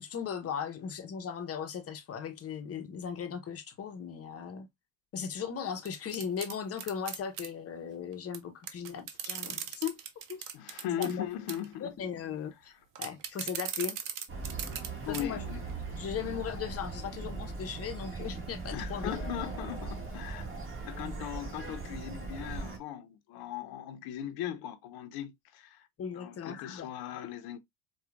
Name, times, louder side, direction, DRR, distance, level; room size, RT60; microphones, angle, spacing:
voice 1, 0.0-4.7 5.1-10.0 10.3-10.4 11.0-11.2 11.8-12.7 13.0-14.0 15.1-15.4 15.9-19.4 26.0-26.9, left 7 dB, 35° left, 0.9 m, -37 dB
sound 1, 5.9-7.5 8.3-8.4 8.6-11.1 11.5-11.7 13.0-14.9 15.1-15.2 15.7-15.8, right 9 dB, 50° right, 0.8 m, -38 dB
voice 2, 10.5-11.9 15.0-15.6 18.7-20.5 20.8-25.9 26.1-27.6, left 10 dB, 60° left, 0.9 m, -39 dB
sound 2, 14.3-22.8, right 3 dB, 30° right, 1.7 m, -39 dB
4.4 x 2.4 x 2.4 m
supercardioid pair, 90°, 41 cm